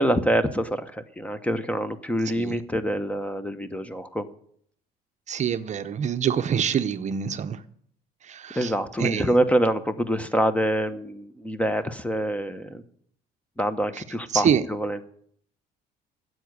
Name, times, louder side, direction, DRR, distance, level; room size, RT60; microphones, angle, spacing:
voice 1, 0.0-4.3 8.6-12.8 13.6-15.0, equal, 10° left, 0.9 m, -25 dB
voice 2, 5.3-7.6 8.3-8.7 9.0-9.3 13.9-14.0 14.3-14.6, right 8 dB, 45° right, 0.7 m, -25 dB
9.9 x 7.8 x 9.6 m
cardioid pair, 110°, 17 cm